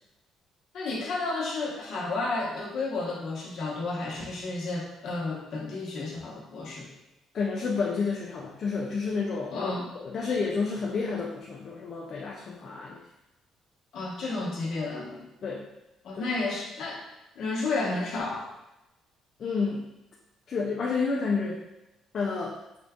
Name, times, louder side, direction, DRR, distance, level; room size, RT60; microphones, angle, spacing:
voice 1, 0.7-6.9 9.5-9.9 13.9-15.3 16.0-17.0 17.4-18.5, left 3 dB, 60° left, -3 dB, 1.0 m, -32 dB
voice 2, 7.3-13.0 15.4-15.7 16.1-16.2 19.4-19.9 20.5-21.6 22.1-22.6, left 4 dB, 45° left, -1 dB, 0.4 m, -30 dB
3.8 x 2.3 x 3.5 m, 0.96 s
cardioid pair, 130°, 0 cm